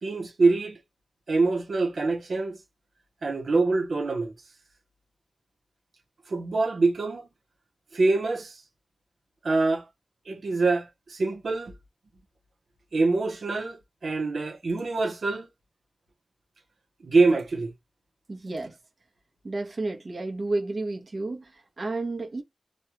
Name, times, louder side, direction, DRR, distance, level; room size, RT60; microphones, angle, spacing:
voice 1, 0.0-0.8 1.3-2.6 3.2-4.3 6.3-7.3 7.9-8.6 9.4-9.8 10.3-11.7 12.9-15.5 17.0-17.7, right 3 dB, 80° right, 0.8 m, -25 dB
voice 2, 18.3-18.8 19.4-22.4, right 2 dB, 55° right, 1.0 m, -31 dB
3.2 x 2.3 x 2.9 m
wide cardioid pair, 85°, 0 cm